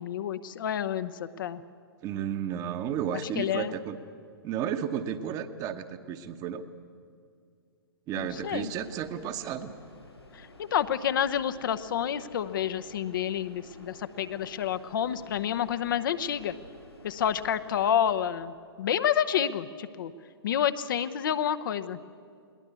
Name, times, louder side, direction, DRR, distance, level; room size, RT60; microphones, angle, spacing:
voice 1, 0.0-1.6 3.1-3.7 8.2-8.7 10.3-16.5 17.0-20.1 20.4-22.0, left 9 dB, 55° left, 11 dB, 0.9 m, -29 dB
voice 2, 2.0-4.0 4.4-6.6 8.1-9.7, right 8 dB, 30° right, 9 dB, 1.1 m, -33 dB
sound 1, 8.1-18.1, left 1 dB, 90° left, 6.2 m, -51 dB
21.5 x 19.0 x 8.3 m, 2.3 s
figure-of-eight pair, 115°, 13 cm